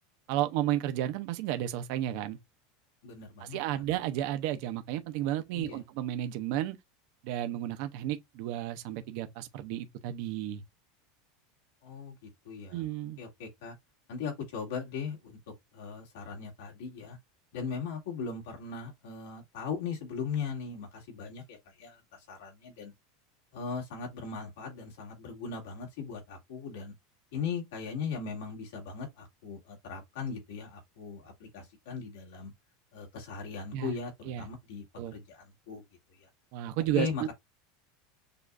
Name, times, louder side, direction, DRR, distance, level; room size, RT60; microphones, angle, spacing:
voice 1, 0.3-2.4 3.4-6.8 7.2-10.6 12.7-13.2 33.7-33.9 34.3-34.5 35.0-35.1 36.5-37.3, right 12 dB, 55° right, 0.6 m, -32 dB
voice 2, 3.0-3.8 5.5-5.8 11.8-12.8 13.2-13.8 14.1-15.4 15.7-17.2 17.5-22.9 23.5-26.9 27.3-32.5 32.9-34.8 35.1-35.8 36.2-36.3 36.9-37.3, left 5 dB, 85° left, 2.3 m, -38 dB
6.6 x 2.4 x 2.5 m
supercardioid pair, 155°, 0 cm